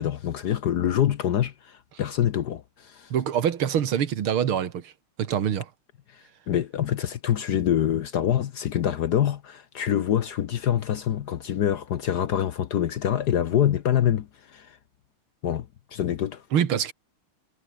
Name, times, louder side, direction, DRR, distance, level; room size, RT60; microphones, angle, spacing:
voice 1, 0.0-3.1 6.1-14.8 15.4-16.4, left 10 dB, 60° left, 1.2 m, -25 dB
voice 2, 3.1-4.9 5.2-5.7 16.5-16.9, right 9 dB, 75° right, 2.4 m, -25 dB
omnidirectional pair, 2.4 m